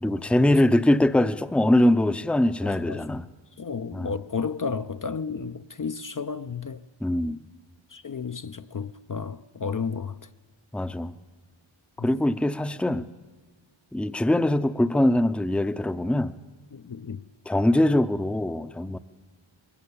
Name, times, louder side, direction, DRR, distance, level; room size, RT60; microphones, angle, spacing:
voice 1, 0.0-3.2 3.9-4.1 7.0-7.4 10.7-11.1 12.0-13.0 13.9-16.3 17.5-19.0, left 1 dB, ahead, 0.6 m, -22 dB
voice 2, 2.6-3.2 3.6-6.8 7.9-10.3 12.0-12.1 16.7-17.3, left 5 dB, 45° left, 0.6 m, -33 dB
21.5 x 16.5 x 8.6 m
wide cardioid pair, 65°, 48 cm